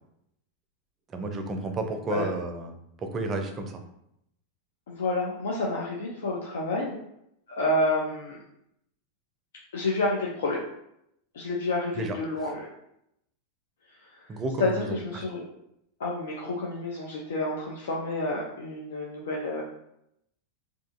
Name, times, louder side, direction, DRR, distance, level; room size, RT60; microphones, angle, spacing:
voice 1, 1.1-3.8 11.9-12.2 14.3-15.2, right 2 dB, 30° right, 5 dB, 0.5 m, -32 dB
voice 2, 4.9-7.0 7.5-8.4 9.7-10.6 11.3-12.7 14.0-14.3 14.6-15.4 16.0-19.6, left 2 dB, 75° left, -3 dB, 0.5 m, -29 dB
2.4 x 2.4 x 2.6 m, 0.78 s
hypercardioid pair, 95°, 0 cm